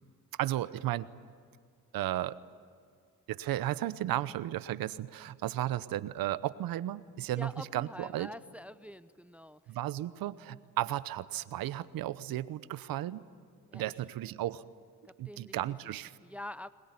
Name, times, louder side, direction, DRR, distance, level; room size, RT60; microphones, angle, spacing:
voice 1, 0.4-1.1 1.9-2.4 3.3-8.3 9.7-13.2 13.7-14.6 15.2-16.1, right 14 dB, 80° right, 16 dB, 0.9 m, -34 dB
voice 2, 7.3-9.8 13.7-13.9 15.0-15.5 15.8-16.7, left 1 dB, 5° right, 15 dB, 0.7 m, -46 dB
22.0 x 20.5 x 9.7 m, 2.1 s
cardioid pair, 70°, 35 cm